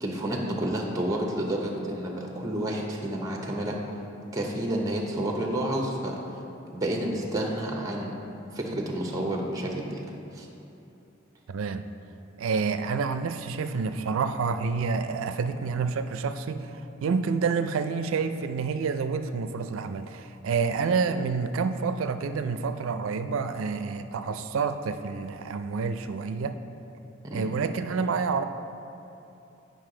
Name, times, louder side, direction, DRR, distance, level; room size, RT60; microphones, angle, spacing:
voice 1, 0.0-3.8 4.3-6.2 6.7-8.1 8.5-10.0 10.3-10.5 27.2-27.5, right 1 dB, 15° right, 1 dB, 0.7 m, -30 dB
voice 2, 11.5-11.8 12.4-26.6 27.3-28.4, right 5 dB, 75° right, 10 dB, 0.4 m, -28 dB
9.3 x 5.2 x 3.8 m, 2.9 s
head